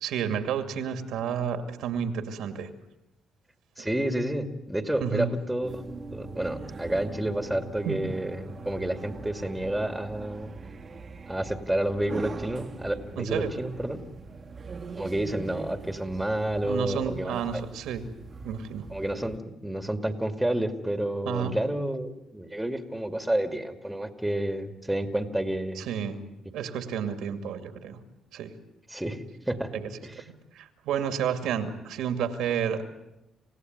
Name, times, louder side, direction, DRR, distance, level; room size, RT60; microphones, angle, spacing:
voice 1, 0.0-2.7 3.8-3.9 5.0-5.3 7.8-8.0 13.2-13.5 16.6-18.0 18.4-18.9 21.3-21.6 25.8-26.2 26.5-28.0 28.3-28.5 29.7-29.9 30.5-32.8, right 8 dB, 85° right, 8 dB, 2.4 m, -30 dB
voice 2, 3.8-5.8 6.1-10.5 11.3-14.0 15.0-17.6 18.9-25.9 28.9-29.8 30.0-30.2, right 1 dB, 5° right, 8 dB, 2.4 m, -30 dB
sound 1, 5.6-19.4, right 4 dB, 40° right, 1.6 m, -42 dB
28.0 x 16.5 x 9.5 m, 0.92 s
cardioid pair, 90°, 0 cm